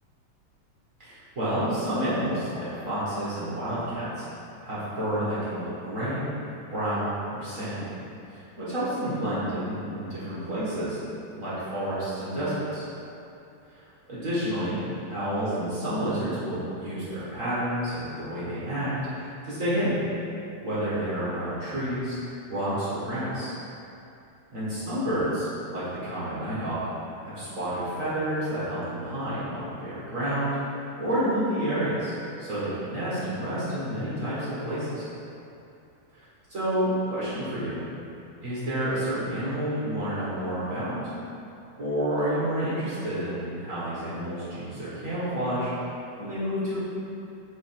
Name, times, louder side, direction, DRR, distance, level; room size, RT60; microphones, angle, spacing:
voice 1, 1.0-4.2 4.6-6.3 6.7-7.9 8.3-11.0 11.3-12.8 13.7-14.8 15.1-20.0 20.6-22.2 22.5-23.5 24.5-26.8 27.2-30.5 31.0-32.1 32.4-35.1 36.5-37.8 38.4-41.0 41.8-45.7 46.2-46.8, right 1 dB, 40° right, -11 dB, 1.2 m, -29 dB
5.3 x 5.0 x 5.2 m, 2.7 s
omnidirectional pair, 3.7 m